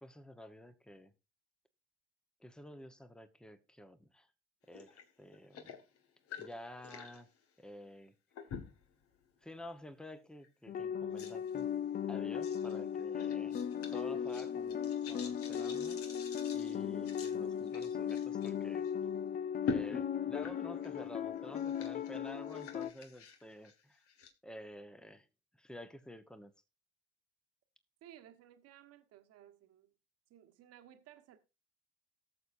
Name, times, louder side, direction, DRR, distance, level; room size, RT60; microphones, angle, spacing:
voice 1, 0.0-1.1 2.4-4.3 4.7-5.7 6.4-7.3 7.6-8.1 9.4-11.7 12.1-13.6 13.9-16.0 16.5-18.9 19.7-24.0 24.4-25.3 25.6-26.5, equal, 5° left, 1.1 m, -50 dB
sound 1, 4.7-5.0 5.3-7.2 8.3-8.9 9.5-9.7 10.4-10.5 11.2-11.6 12.4-12.8 13.2-18.5 18.8-18.9 19.6-21.1 21.4-24.3, left 5 dB, 50° left, 1.7 m, -46 dB
sound 2, 10.7-22.9, left 8 dB, 30° left, 0.6 m, -37 dB
voice 2, 28.0-29.9 30.3-31.4, right 11 dB, 55° right, 1.4 m, -58 dB
18.5 x 6.8 x 2.6 m
hypercardioid pair, 65°, 29 cm